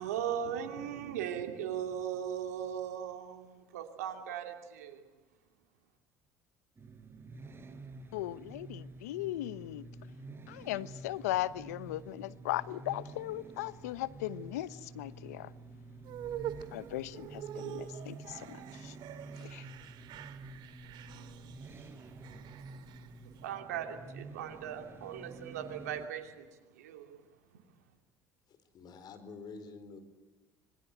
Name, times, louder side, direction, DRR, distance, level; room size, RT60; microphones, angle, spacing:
voice 1, 0.0-5.0 23.4-26.4 26.7-27.2, right 9 dB, 90° right, 2.7 m, -38 dB
sound 1, 6.8-26.1, right 2 dB, 30° right, 5.3 m, -49 dB
voice 2, 8.1-9.8 10.5-15.5 16.7-19.0 19.4-19.7, left 14 dB, 85° left, 0.9 m, -38 dB
sound 2, 16.0-23.5, right 11 dB, 65° right, 2.4 m, -45 dB
voice 3, 28.5-30.0, left 4 dB, 55° left, 4.6 m, -48 dB
26.0 x 21.0 x 9.2 m
hypercardioid pair, 70°, 8 cm